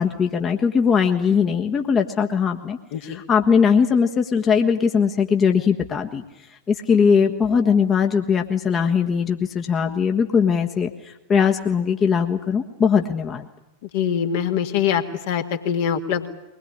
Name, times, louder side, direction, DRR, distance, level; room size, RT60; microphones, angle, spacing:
voice 1, 0.0-6.2 6.7-10.9 11.3-13.5, left 6 dB, 25° left, 3 dB, 1.4 m, -20 dB
voice 2, 2.9-3.2 13.9-16.3, left 8 dB, 50° left, 4 dB, 1.9 m, -23 dB
22.5 x 20.5 x 9.8 m, 0.97 s
figure-of-eight pair, 90°, 0 cm